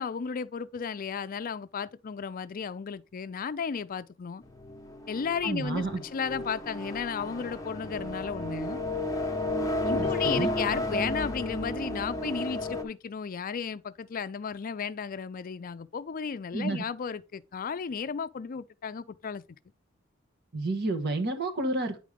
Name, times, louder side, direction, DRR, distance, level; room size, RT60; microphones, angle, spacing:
voice 1, 0.0-4.4 5.1-8.8 9.8-19.4, left 6 dB, 45° left, 0.4 m, -34 dB
sound 1, 4.4-12.8, left 1 dB, 15° left, 1.0 m, -33 dB
voice 2, 5.4-6.0 10.0-10.5 16.5-16.8 20.5-22.0, right 2 dB, 55° right, 1.3 m, -30 dB
9.2 x 5.1 x 3.4 m
head